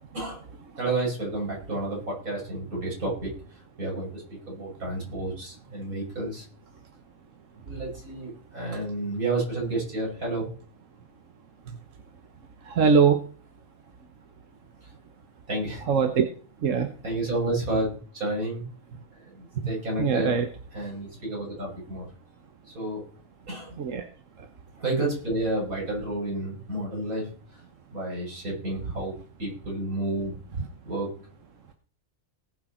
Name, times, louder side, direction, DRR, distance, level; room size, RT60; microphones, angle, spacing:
voice 1, 0.8-3.3 3.8-6.4 7.6-10.5 15.5-15.8 17.0-18.7 19.2-20.4 20.7-22.1 22.7-23.0 23.5-23.8 24.8-27.3 27.9-29.1 29.4-30.3 30.8-31.1, right 2 dB, 90° right, -3 dB, 6.9 m, -30 dB
voice 2, 12.6-13.2 15.9-16.3 16.6-16.9 20.0-20.5 23.8-24.1, right 6 dB, 65° right, 6 dB, 1.4 m, -21 dB
19.5 x 6.7 x 4.4 m, 0.42 s
omnidirectional pair, 1.4 m